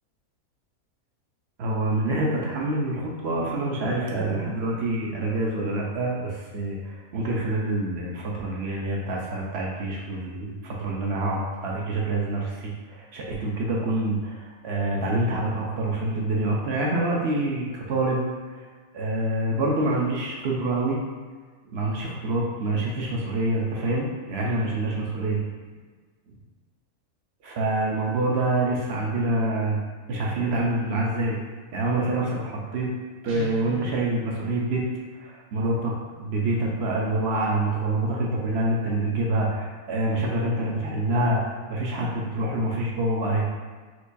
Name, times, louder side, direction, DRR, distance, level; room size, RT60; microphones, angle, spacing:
voice 1, 1.6-18.2 18.9-21.0 21.7-25.4 27.4-29.8 30.1-31.4 31.7-32.9 33.2-34.8 35.2-41.4 41.7-43.5, right 2 dB, 60° right, -2 dB, 0.7 m, -26 dB
Guitar, 33.3-34.1, right 3 dB, 80° right, 1.3 m, -39 dB
4.5 x 2.2 x 2.6 m, 1.4 s
omnidirectional pair, 1.5 m